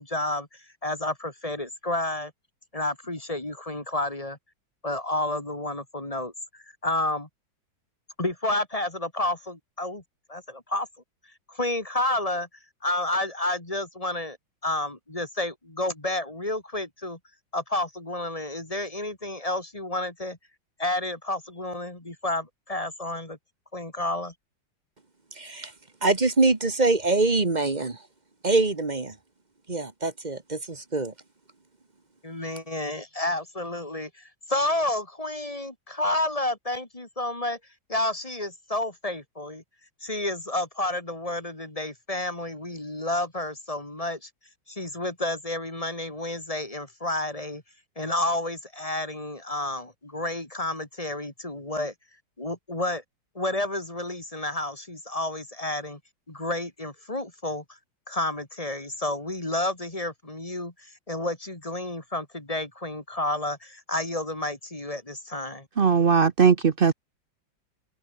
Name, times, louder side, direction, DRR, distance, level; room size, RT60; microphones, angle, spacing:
voice 1, 0.0-2.3 2.7-4.4 4.8-7.3 8.2-10.0 10.3-10.9 11.5-12.5 12.8-14.4 14.6-17.2 17.5-20.4 20.8-23.4 23.7-24.3 32.2-37.6 37.9-39.6 40.0-44.3 44.7-47.6 48.0-51.9 52.4-53.0 53.3-56.0 56.3-57.8 58.1-65.7, left 1 dB, 15° left, 2.9 m, -30 dB
voice 2, 25.4-25.7 26.0-28.0 28.4-29.1 29.7-31.1, right 3 dB, 25° right, 1.5 m, -24 dB
voice 3, 65.8-66.9, right 6 dB, 45° right, 0.7 m, -19 dB
omnidirectional pair, 2.1 m